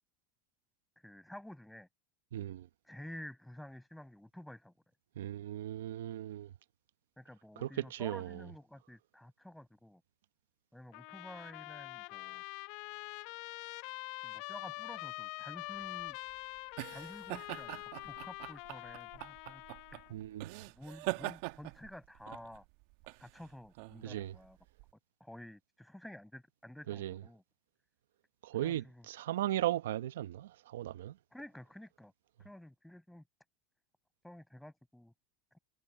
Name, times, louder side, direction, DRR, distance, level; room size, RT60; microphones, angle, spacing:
voice 1, 1.0-1.9 2.9-4.7 7.2-10.0 10.7-12.4 14.2-16.2 16.9-19.6 19.9-20.2 20.7-22.6 23.2-24.6 25.2-27.4 28.6-29.1 31.3-32.1 32.4-33.2 34.2-35.1, left 1 dB, 5° left, 7.5 m, -51 dB
voice 2, 2.3-2.7 5.2-6.5 7.6-8.4 20.1-20.5 24.0-24.3 26.9-27.2 28.4-31.1, right 13 dB, 80° right, 0.9 m, -37 dB
Trumpet, 10.9-20.1, left 23 dB, 60° left, 1.1 m, -45 dB
sound 1, 15.7-24.9, right 24 dB, 60° right, 1.3 m, -44 dB
hypercardioid pair, 100°, 0 cm